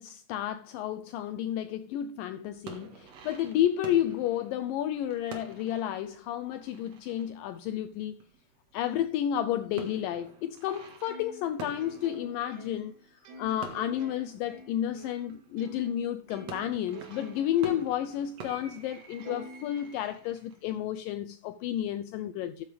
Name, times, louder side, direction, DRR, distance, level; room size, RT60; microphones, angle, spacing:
voice 1, 0.0-8.1 8.7-12.9 13.4-22.6, left 11 dB, 85° left, 2.0 m, -31 dB
sound 1, 2.5-8.7 9.0-15.7 16.2-20.8, right 6 dB, 50° right, 2.4 m, -48 dB
Plucked string instrument, 11.0-16.0 16.3-18.0 18.5-18.6 19.2-20.4, right 2 dB, 80° right, 3.8 m, -48 dB
13.5 x 7.6 x 3.4 m
omnidirectional pair, 4.6 m